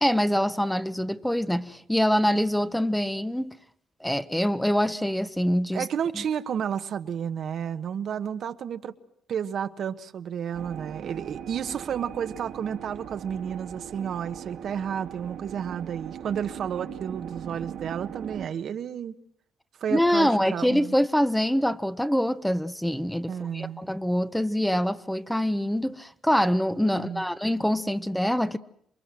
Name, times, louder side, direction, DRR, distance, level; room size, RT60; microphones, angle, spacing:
voice 1, 0.0-3.5 4.0-5.9 6.1-6.2 19.9-28.6, equal, 5° left, 1.0 m, -25 dB
voice 2, 5.7-8.9 9.3-19.1 19.8-20.9 23.3-23.8 27.0-27.2, right 8 dB, 65° right, 1.3 m, -31 dB
sound 1, 10.5-18.5, right 9 dB, 80° right, 2.3 m, -40 dB
28.0 x 23.5 x 7.6 m
cardioid pair, 90°, 0 cm